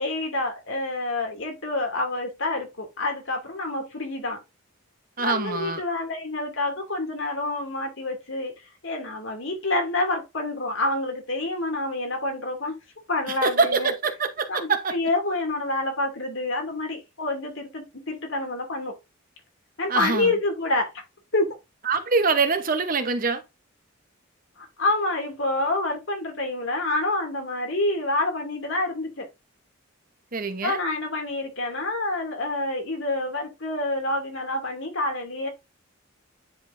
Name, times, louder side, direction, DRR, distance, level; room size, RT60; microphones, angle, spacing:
voice 1, 0.0-4.4 5.2-8.5 8.8-12.7 13.1-13.9 14.5-18.9 19.8-20.9 21.3-21.6 24.6-29.3 30.6-35.5, left 2 dB, 65° left, 2.5 m, -27 dB
voice 2, 5.2-5.8 13.4-15.0 19.9-20.3 21.8-23.4 30.3-30.8, right 4 dB, 40° right, 0.9 m, -24 dB
9.9 x 4.4 x 2.6 m
head